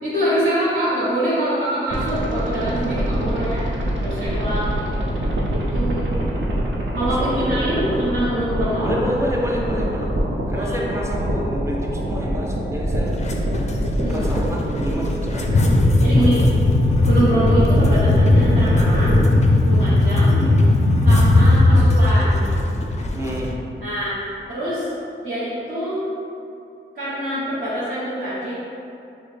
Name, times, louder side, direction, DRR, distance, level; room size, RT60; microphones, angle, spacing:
voice 1, 0.0-3.7 4.0-4.7 5.5-6.2 6.9-8.9 10.5-10.8 14.0-14.3 16.0-16.5 17.0-19.2 19.6-20.4 21.0-22.4 23.8-24.9 25.2-26.0 26.9-28.5, right 1 dB, 45° right, -12 dB, 1.1 m, -24 dB
sound 1, 1.9-19.2, right 1 dB, 75° right, 0.6 m, -25 dB
voice 2, 7.2-7.9 8.7-10.1 10.5-13.2 14.1-15.7 16.1-16.4 20.3-20.5 23.1-23.5, equal, 15° right, -3 dB, 0.6 m, -28 dB
sound 2, 13.1-23.5, left 2 dB, 35° left, 0.4 m, -17 dB
6.1 x 2.1 x 3.3 m, 2.7 s
wide cardioid pair, 120°, 20 cm